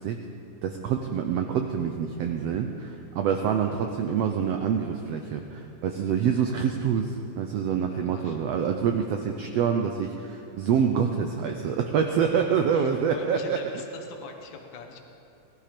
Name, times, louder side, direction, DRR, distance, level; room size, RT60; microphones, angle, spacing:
voice 1, 0.6-13.6, right 7 dB, 90° right, 5 dB, 1.4 m, -26 dB
voice 2, 7.9-8.4 12.3-12.4 12.7-15.0, left 4 dB, 70° left, 4 dB, 1.1 m, -43 dB
18.5 x 13.5 x 5.1 m, 2.8 s
omnidirectional pair, 3.7 m